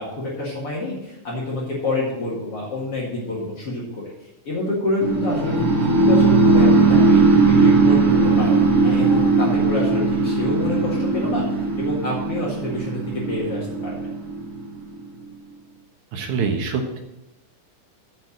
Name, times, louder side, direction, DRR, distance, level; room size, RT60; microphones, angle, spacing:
voice 1, 0.0-4.0 4.5-7.2 7.5-8.6 8.8-14.0, left 2 dB, 50° left, -6 dB, 2.8 m, -27 dB
sound 1, 5.0-15.0, right 3 dB, 55° right, 2.6 m, -18 dB
Human voice, 6.6-7.6 8.1-9.7 10.6-11.8, left 4 dB, 70° left, 1.8 m, -33 dB
voice 2, 16.1-17.0, right 5 dB, 75° right, 3 dB, 2.6 m, -25 dB
8.6 x 6.0 x 7.2 m, 0.93 s
omnidirectional pair, 3.4 m